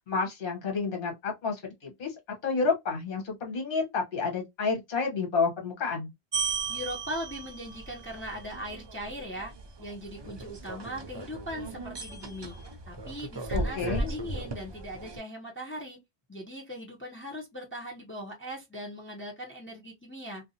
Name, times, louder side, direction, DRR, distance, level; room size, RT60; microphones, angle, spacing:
voice 1, 0.1-2.1 2.4-6.1 13.5-14.1, left 4 dB, 60° left, 1.1 m, -30 dB
sound 1, 6.3-15.2, right 3 dB, 40° right, 0.3 m, -36 dB
voice 2, 6.4-9.5 9.8-12.6 12.9-16.0 16.3-20.5, equal, 15° left, 0.5 m, -40 dB
2.6 x 2.2 x 2.6 m
omnidirectional pair, 1.0 m